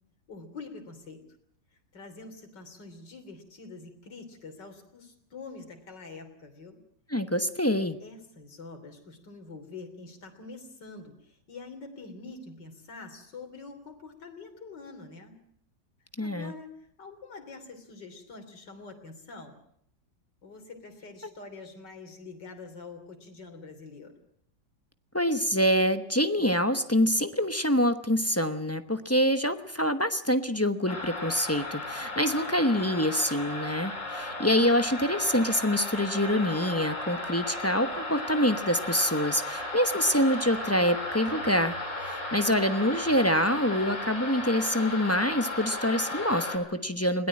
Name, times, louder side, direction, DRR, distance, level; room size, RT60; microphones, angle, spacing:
voice 1, 0.3-1.2 1.9-6.8 8.0-15.4 16.2-19.6 20.4-24.2, left 3 dB, 75° left, 5 dB, 3.9 m, -45 dB
voice 2, 7.1-8.0 16.2-16.5 25.1-41.8 42.1-47.3, equal, 15° left, 9 dB, 0.6 m, -26 dB
sound 1, 30.9-46.6, left 2 dB, 45° left, 4.8 m, -35 dB
21.5 x 18.0 x 8.6 m, 0.69 s
omnidirectional pair, 1.9 m